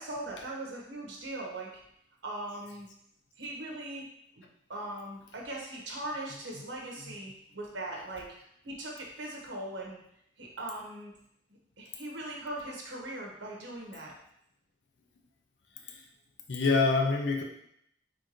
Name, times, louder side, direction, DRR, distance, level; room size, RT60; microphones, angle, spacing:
voice 1, 0.0-1.7 2.2-2.9 3.4-4.1 4.4-4.5 4.7-8.3 8.6-10.0 10.4-11.1 11.8-14.1, right 1 dB, 85° right, -1 dB, 1.2 m, -40 dB
voice 2, 16.5-17.4, left 3 dB, 70° left, 1 dB, 0.6 m, -26 dB
4.5 x 3.8 x 3.0 m, 0.74 s
head